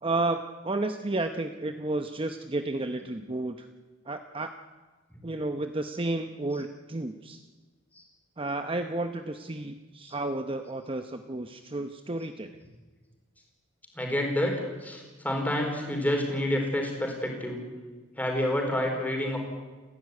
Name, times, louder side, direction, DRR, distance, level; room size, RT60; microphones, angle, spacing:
voice 1, 0.0-3.7 4.1-4.5 5.2-7.4 8.4-12.6, right 2 dB, 25° right, 7 dB, 0.8 m, -32 dB
voice 2, 13.9-17.6 18.2-19.4, left 1 dB, 10° left, 1 dB, 4.6 m, -28 dB
29.5 x 11.5 x 9.6 m, 1.3 s
head